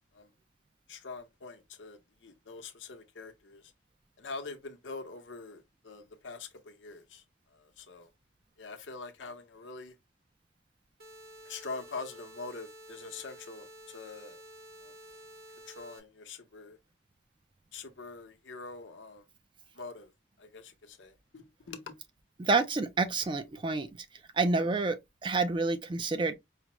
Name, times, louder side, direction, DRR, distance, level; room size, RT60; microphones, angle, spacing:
voice 1, 0.9-3.7 4.2-7.2 7.5-8.1 8.6-10.0 11.4-14.4 14.8-14.9 15.7-16.8 17.7-19.3 19.7-20.1 20.4-21.9, left 4 dB, 75° left, 0.8 m, -44 dB
ob sawtooth, 11.0-16.0, equal, 50° right, 0.9 m, -51 dB
voice 2, 22.4-24.1 24.3-26.4, right 3 dB, 25° right, 0.3 m, -29 dB
4.8 x 2.0 x 2.9 m
head